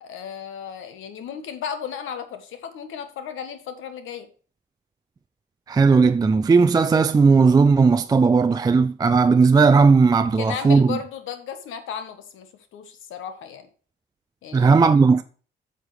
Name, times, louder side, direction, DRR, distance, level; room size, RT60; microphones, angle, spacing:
voice 1, 0.0-4.3 10.4-13.7 14.4-14.7, left 7 dB, 80° left, 1.3 m, -34 dB
voice 2, 5.7-11.0 14.5-15.2, right 4 dB, 20° right, 0.4 m, -16 dB
8.8 x 6.5 x 3.2 m
cardioid pair, 90°, 20 cm